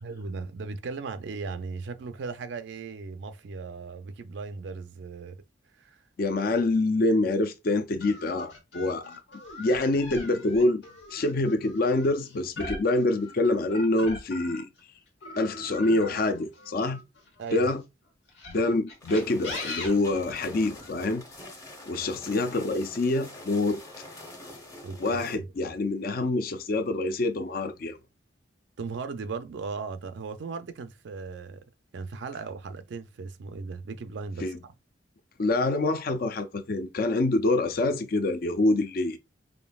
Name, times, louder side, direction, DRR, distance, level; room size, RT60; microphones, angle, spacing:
voice 1, 0.0-5.4 5.8-6.0 17.4-17.7 24.8-25.5 28.8-31.6 31.9-34.7, right 4 dB, 65° right, 0.4 m, -37 dB
voice 2, 6.2-9.1 9.6-10.8 11.1-14.7 15.4-17.0 17.5-17.8 18.5-21.2 21.9-23.8 25.0-28.0 34.4-34.6 35.4-39.2, left 2 dB, 50° left, 0.5 m, -26 dB
sound 1, 8.0-14.8 15.2-17.6 18.3-20.9, left 2 dB, 75° left, 1.2 m, -41 dB
sound 2, 19.0-25.4, left 1 dB, 20° left, 0.8 m, -46 dB
5.1 x 2.6 x 2.3 m
head